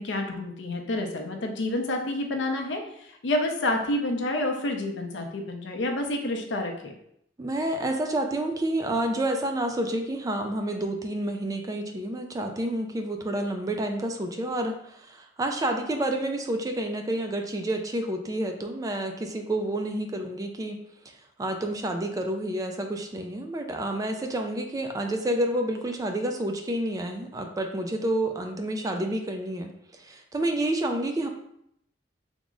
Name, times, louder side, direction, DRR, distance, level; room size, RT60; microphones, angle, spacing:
voice 1, 0.0-6.9, left 1 dB, 80° left, 3 dB, 0.5 m, -29 dB
voice 2, 7.4-20.8 21.4-31.3, right 1 dB, 20° right, 4 dB, 0.3 m, -29 dB
3.5 x 2.0 x 3.6 m, 0.74 s
head